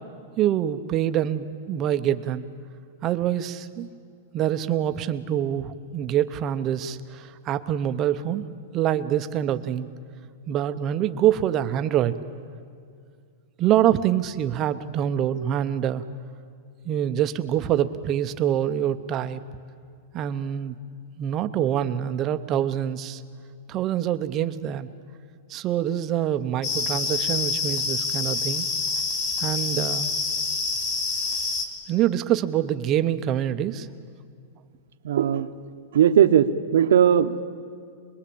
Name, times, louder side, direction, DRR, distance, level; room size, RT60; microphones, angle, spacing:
voice 1, 0.4-2.5 3.0-3.9 4.3-8.5 8.7-9.9 10.5-12.2 13.6-16.0 16.8-19.4 20.1-20.8 21.2-23.2 23.7-24.9 25.5-28.7 29.4-30.1 31.9-33.9, right 11 dB, 20° right, 10 dB, 0.7 m, -25 dB
sound 1, 26.6-31.7, left 4 dB, 30° left, 2.8 m, -27 dB
voice 2, 35.0-35.5 35.9-37.4, right 9 dB, 75° right, 9 dB, 1.0 m, -18 dB
25.0 x 21.5 x 8.6 m, 2.3 s
supercardioid pair, 180°, 0 cm